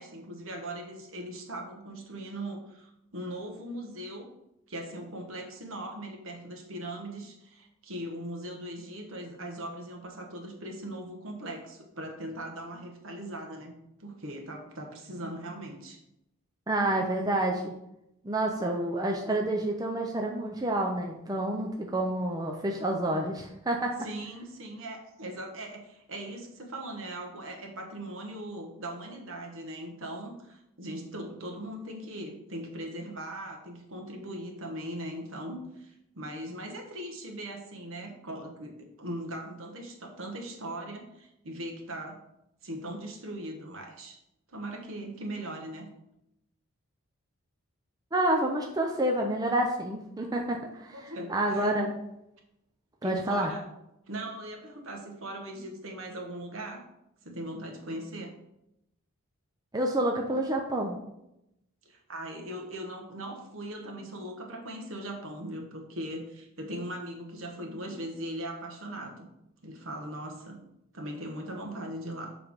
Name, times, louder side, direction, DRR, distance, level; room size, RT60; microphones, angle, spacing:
voice 1, 0.0-4.3 4.7-13.7 14.0-16.0 24.0-42.2 42.6-44.2 44.5-45.9 50.9-51.7 53.0-53.7 54.1-56.8 57.2-58.3 61.8-69.3 69.6-70.6 70.9-72.3, right 1 dB, 65° right, 3 dB, 1.2 m, -39 dB
voice 2, 16.7-17.7 18.2-24.0 48.1-51.9 53.0-53.5 59.7-61.0, right 1 dB, 15° right, 1 dB, 0.5 m, -28 dB
7.2 x 3.3 x 5.2 m, 0.85 s
head